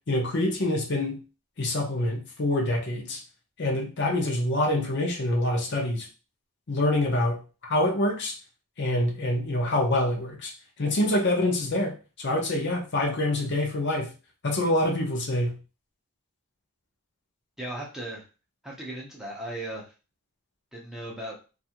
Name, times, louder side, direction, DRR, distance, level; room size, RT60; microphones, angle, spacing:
voice 1, 0.1-1.2 1.6-3.2 3.6-6.1 6.7-8.3 8.8-10.5 10.8-14.1 14.4-15.6, left 1 dB, 50° left, 1 dB, 0.6 m, -26 dB
voice 2, 17.6-18.3 18.6-19.9 20.7-21.4, right 1 dB, ahead, -4 dB, 0.6 m, -36 dB
2.6 x 2.4 x 2.8 m, 0.32 s
head